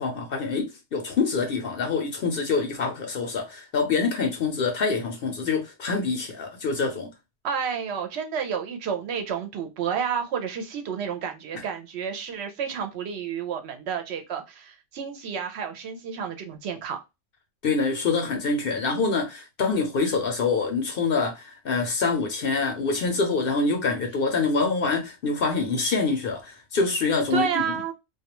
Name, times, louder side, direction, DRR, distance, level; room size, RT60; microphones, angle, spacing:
voice 1, 0.0-7.1 17.6-27.7, left 4 dB, 60° left, 0.7 m, -25 dB
voice 2, 7.4-17.0 27.3-27.9, right 7 dB, 70° right, 0.8 m, -30 dB
2.3 x 2.2 x 2.9 m
omnidirectional pair, 1.2 m